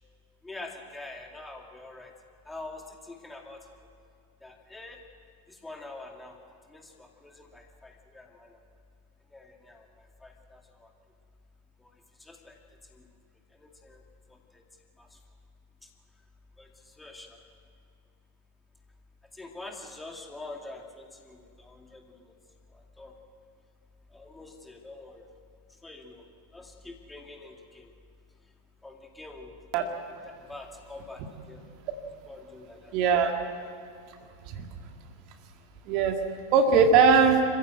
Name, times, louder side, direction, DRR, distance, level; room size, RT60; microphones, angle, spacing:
voice 1, 0.4-2.1 2.5-3.7 4.4-5.0 5.5-6.4 6.7-8.6 9.3-10.9 11.8-13.0 13.5-14.0 14.3-14.6 15.0-15.2 15.8-15.9 16.6-17.4 19.3-22.3 22.7-23.2 24.1-25.3 25.7-26.3 26.5-27.9 28.8-29.9 30.2-31.7 32.3-33.0 34.2-34.4, left 2 dB, 5° left, 2 dB, 2.3 m, -46 dB
voice 2, 32.9-33.3 34.5-34.7 35.9-36.2 36.5-37.4, right 5 dB, 40° right, 4 dB, 2.0 m, -20 dB
27.0 x 15.0 x 7.9 m, 2.4 s
figure-of-eight pair, 90°, 0 cm